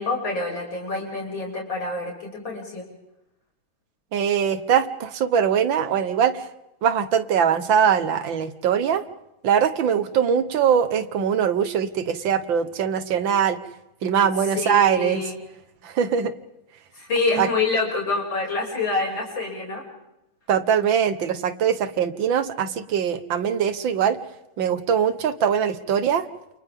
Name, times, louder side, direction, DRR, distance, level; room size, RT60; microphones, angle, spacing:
voice 1, 0.0-2.8 14.5-15.4 16.9-19.9, left 3 dB, 65° left, -2 dB, 7.3 m, -27 dB
voice 2, 4.1-6.5 6.8-9.0 9.4-13.6 14.0-15.2 15.8-16.3 17.4-17.5 20.5-24.2 24.6-26.3, right 8 dB, 70° right, 11 dB, 2.0 m, -22 dB
29.0 x 29.0 x 3.7 m, 0.88 s
omnidirectional pair, 2.2 m